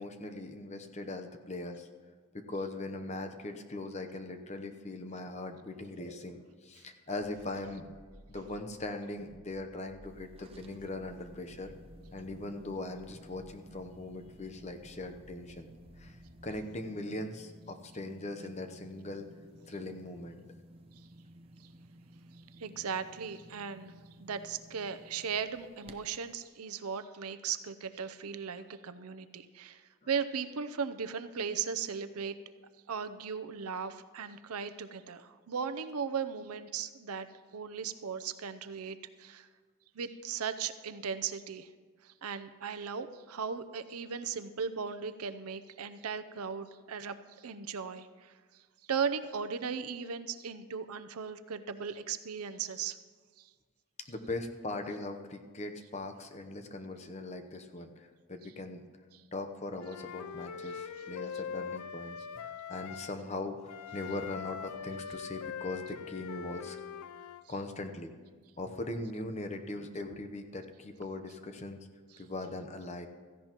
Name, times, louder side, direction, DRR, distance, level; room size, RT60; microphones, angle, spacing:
voice 1, 0.0-1.9 2.3-8.0 8.3-11.8 12.1-15.7 16.0-16.2 16.4-19.3 19.7-20.4 54.1-58.8 59.3-66.8 67.5-68.1 68.6-71.8 72.2-73.1, left 2 dB, 30° left, 7 dB, 0.8 m, -40 dB
sound 1, 7.1-16.6, right 1 dB, 55° left, 3.7 m, -58 dB
sound 2, 10.0-26.3, right 1 dB, 25° right, 0.6 m, -56 dB
voice 2, 22.6-23.9 24.2-32.4 32.9-37.3 37.5-39.5 39.9-41.7 42.0-48.6 48.9-53.0 53.4-53.5 59.1-59.2 60.6-61.0, right 6 dB, 85° right, 12 dB, 0.6 m, -37 dB
Wind instrument woodwind instrument, 59.8-63.2 63.7-67.4, left 7 dB, 90° left, 0.4 m, -42 dB
16.5 x 14.5 x 3.0 m, 1.5 s
head